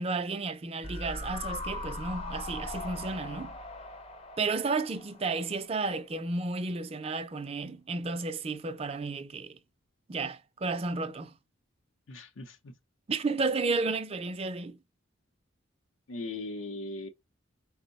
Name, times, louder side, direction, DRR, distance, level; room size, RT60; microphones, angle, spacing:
voice 1, 0.0-3.5 4.4-9.6 10.1-11.4 13.1-14.8, right 3 dB, 30° right, 0.4 m, -32 dB
sound 1, 0.8-6.1 6.4-6.5, left 1 dB, 30° left, 0.6 m, -40 dB
voice 2, 12.1-12.7 16.1-17.1, left 2 dB, 80° left, 0.7 m, -39 dB
4.5 x 2.1 x 3.9 m
head